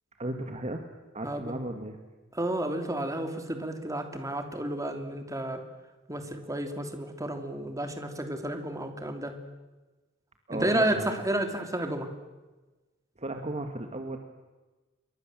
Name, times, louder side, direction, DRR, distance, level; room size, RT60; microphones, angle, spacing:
voice 1, 0.2-0.8 1.1-2.0 10.5-11.2 13.2-14.2, right 1 dB, 35° right, 5 dB, 1.9 m, -35 dB
voice 2, 2.3-5.6 6.1-9.3 10.5-12.1, right 1 dB, 15° right, 6 dB, 3.0 m, -31 dB
27.5 x 23.5 x 7.7 m, 1.2 s
head